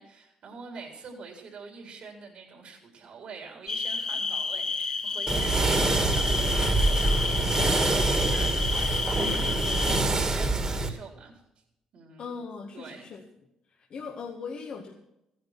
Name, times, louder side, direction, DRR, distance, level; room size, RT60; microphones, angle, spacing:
voice 1, 0.0-11.4 11.9-12.4 12.7-13.1, right 5 dB, 65° right, 2 dB, 4.0 m, -45 dB
sound 1, 3.7-10.0, left 4 dB, 40° left, 1.8 m, -30 dB
sound 2, 5.3-10.9, right 2 dB, 30° right, 2.4 m, -25 dB
voice 2, 12.2-13.2 13.7-14.9, left 5 dB, 60° left, 0 dB, 1.8 m, -39 dB
15.0 x 10.5 x 6.0 m, 0.84 s
supercardioid pair, 65°, 2 cm